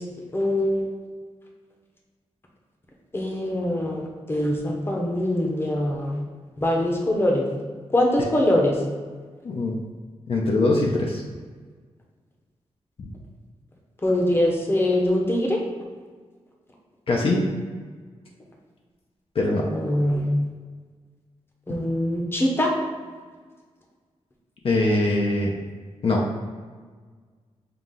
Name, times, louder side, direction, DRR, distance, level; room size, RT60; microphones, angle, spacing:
voice 1, 0.3-0.9 3.1-6.1 6.6-7.5 7.9-8.8 14.0-15.6 19.6-20.3 21.7-22.7, left 1 dB, 20° left, -1 dB, 0.8 m, -23 dB
voice 2, 9.4-9.8 10.3-11.2 13.0-13.1 17.1-17.4 19.3-19.6 24.6-25.5 26.0-26.4, left 2 dB, 55° left, -1 dB, 0.6 m, -22 dB
5.7 x 2.4 x 3.7 m, 1.5 s
wide cardioid pair, 100°, 11 cm